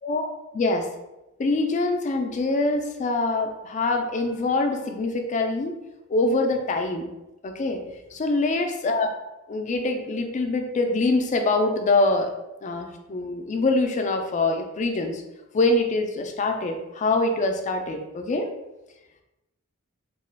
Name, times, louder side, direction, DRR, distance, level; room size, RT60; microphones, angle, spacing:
voice 1, 0.5-0.9 1.4-5.8 6.1-7.1 7.4-9.1 9.5-12.3 12.6-15.2 15.5-18.5, left 2 dB, 35° left, 5 dB, 0.3 m, -24 dB
2.9 x 2.3 x 3.3 m, 0.97 s
head